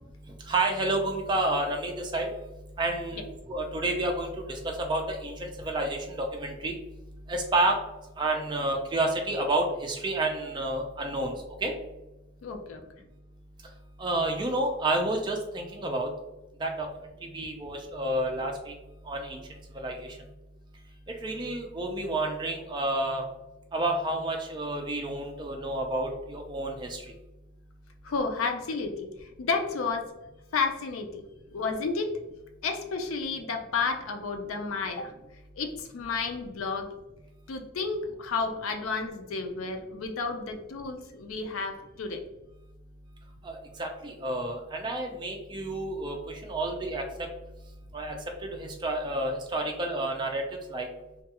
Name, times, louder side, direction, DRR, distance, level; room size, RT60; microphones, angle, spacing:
voice 1, 0.5-2.3 2.8-6.7 7.3-7.8 8.2-11.3 11.6-11.7 14.0-16.1 16.6-16.9 17.2-18.7 19.1-19.4 19.7-20.2 21.2-23.2 23.7-27.0 43.4-47.0 47.9-48.2 48.5-50.4 50.7-50.9, right 2 dB, 20° right, 2 dB, 0.3 m, -30 dB
voice 2, 12.4-12.8 28.0-30.1 30.5-31.2 31.5-32.1 32.6-35.2 35.6-37.0 37.5-42.2, left 4 dB, 85° left, 5 dB, 0.4 m, -31 dB
2.3 x 2.2 x 2.8 m, 1.0 s
head